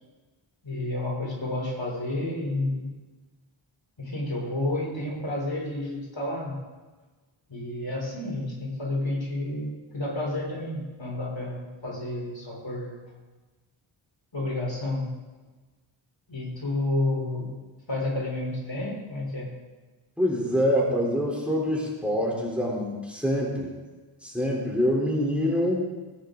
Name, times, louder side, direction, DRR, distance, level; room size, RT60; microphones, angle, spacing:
voice 1, 0.6-2.9 4.0-6.6 7.5-13.0 14.3-15.1 16.3-17.5 17.9-19.5, left 2 dB, 60° left, -3 dB, 3.9 m, -30 dB
voice 2, 20.2-23.7 24.2-25.9, equal, ahead, -4 dB, 3.6 m, -25 dB
18.0 x 9.1 x 3.9 m, 1.3 s
wide cardioid pair, 50°, 50 cm